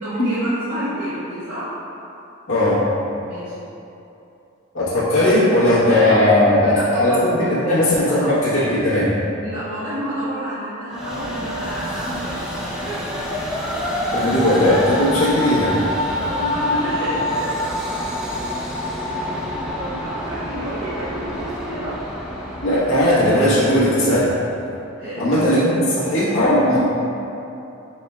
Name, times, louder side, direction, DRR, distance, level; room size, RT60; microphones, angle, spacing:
voice 1, 0.0-1.7 3.2-3.6 6.6-8.3 9.4-13.0 16.3-17.6 19.7-22.0 25.0-25.3, equal, 65° right, -16 dB, 1.3 m, -30 dB
voice 2, 2.5-2.8 4.7-9.1 14.1-15.8 22.6-24.3 25.2-26.8, left 1 dB, 75° left, -10 dB, 1.1 m, -17 dB
Train, 10.9-24.4, left 1 dB, 5° right, 0.4 m, -27 dB
4.4 x 4.1 x 2.3 m, 2.8 s
head